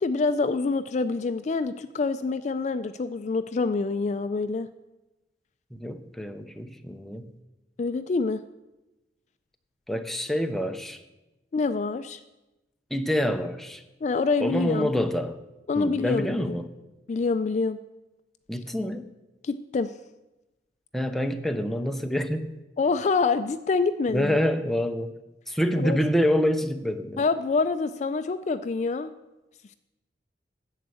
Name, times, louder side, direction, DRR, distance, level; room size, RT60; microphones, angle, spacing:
voice 1, 0.0-4.7 7.8-8.4 11.5-12.2 14.0-14.9 15.7-16.5 17.1-17.8 19.4-19.9 22.8-24.4 25.8-26.0 27.2-29.1, left 4 dB, 40° left, 11 dB, 0.3 m, -26 dB
voice 2, 5.7-7.3 9.9-11.0 12.9-13.8 14.4-15.4 15.7-16.7 18.5-19.0 20.9-22.6 24.1-25.1 25.5-27.2, equal, ahead, 6 dB, 0.6 m, -27 dB
14.0 x 4.6 x 8.2 m, 1.0 s
head